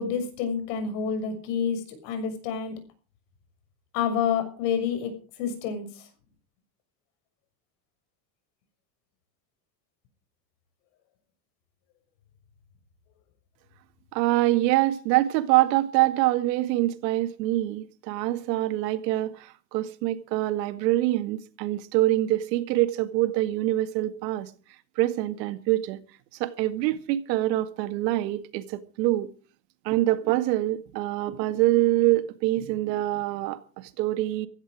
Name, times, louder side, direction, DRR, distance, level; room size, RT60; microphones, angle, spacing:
voice 1, 0.0-2.7 3.9-5.1 5.4-5.9, left 7 dB, 70° left, 6.6 m, -28 dB
voice 2, 14.1-24.5 25.0-26.0 26.4-29.3 29.8-34.5, right 16 dB, 85° right, 2.1 m, -25 dB
16.5 x 15.5 x 4.9 m
cardioid pair, 165°, 49 cm